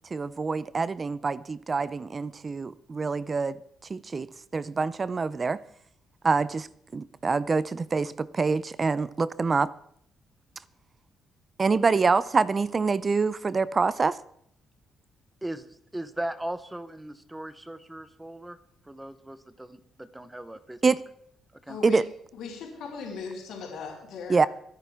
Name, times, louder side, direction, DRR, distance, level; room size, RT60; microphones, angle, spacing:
voice 1, 0.1-3.6 3.9-4.3 4.5-5.6 6.2-6.7 6.9-9.7 11.6-14.2 20.8-21.0 21.8-22.1 24.3-24.5, right 4 dB, 35° right, 0.5 m, -25 dB
voice 2, 15.4-18.6 18.8-20.8 21.5-21.8, right 1 dB, 10° right, 1.0 m, -38 dB
voice 3, 21.7-22.0 22.3-24.5, left 5 dB, 80° left, 4.3 m, -38 dB
23.5 x 10.5 x 3.7 m
cardioid pair, 90°, 0 cm